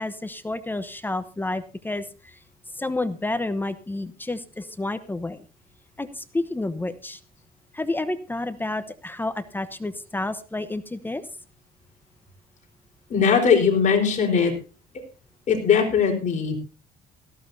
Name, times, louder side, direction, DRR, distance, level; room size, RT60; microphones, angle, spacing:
voice 1, 0.0-2.0 2.8-5.4 6.0-7.2 7.7-11.2, left 2 dB, 10° left, 12 dB, 0.9 m, -30 dB
voice 2, 13.1-14.6 14.9-15.0 15.5-16.6, left 6 dB, 45° left, 3 dB, 4.0 m, -20 dB
17.5 x 14.5 x 2.7 m, 0.32 s
cardioid pair, 110°, 17 cm